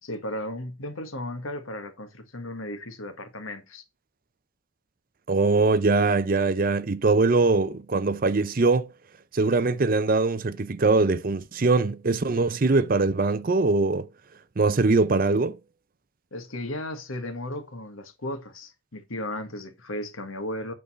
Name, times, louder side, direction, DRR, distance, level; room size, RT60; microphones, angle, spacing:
voice 1, 0.0-3.8 16.3-20.7, left 1 dB, 90° left, 1.6 m, -35 dB
voice 2, 5.3-8.9 9.3-14.1 14.6-15.6, right 3 dB, 45° right, 0.5 m, -22 dB
8.6 x 4.0 x 5.5 m
head